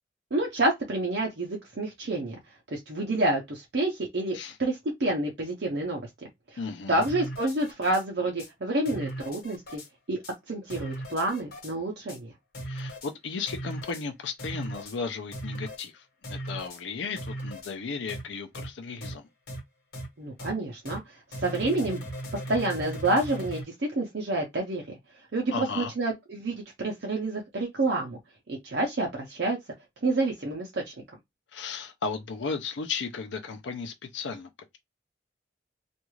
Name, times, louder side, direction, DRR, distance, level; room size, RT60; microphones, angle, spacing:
voice 1, 0.3-2.4 2.7-6.1 6.9-9.8 10.1-10.2 10.5-12.3 20.2-22.0 22.5-25.0 25.3-28.2 28.5-29.6 30.0-30.9, right 2 dB, 65° right, 0.7 m, -28 dB
voice 2, 6.6-7.0 12.6-19.3 25.5-25.9 31.5-34.8, left 5 dB, 85° left, 0.5 m, -35 dB
sound 1, 7.0-8.0 8.4-8.5 8.8-9.9 10.2-10.3 10.7-11.7 12.1-12.2 12.5-13.1 13.5-14.0 14.4-15.0 15.3-15.9 16.2-16.8 17.2-17.7 18.1-18.2 18.5-18.7 19.0-19.1 19.5-19.6 19.9-20.1 20.4-20.5 20.8-21.0 21.3-23.6, right 1 dB, 55° left, 1.3 m, -37 dB
2.5 x 2.3 x 3.0 m
head